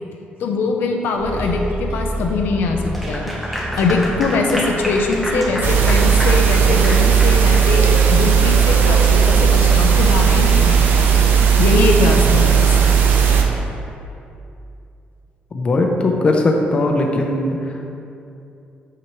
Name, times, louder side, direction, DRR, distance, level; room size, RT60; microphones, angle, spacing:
voice 1, 0.4-3.3 3.8-7.9 8.1-11.1 11.6-12.8, left 3 dB, 90° left, 2 dB, 0.6 m, -21 dB
Bus, 1.2-11.0, equal, 65° right, 1.4 m, -29 dB
Clapping / Applause, 2.8-7.7, equal, ahead, 1.0 m, -28 dB
sound 1, 5.6-13.4, right 7 dB, 80° right, 0.6 m, -14 dB
voice 2, 15.5-18.0, left 2 dB, 35° left, 2 dB, 0.6 m, -19 dB
5.9 x 5.8 x 3.1 m, 2.6 s
cardioid pair, 135°, 3 cm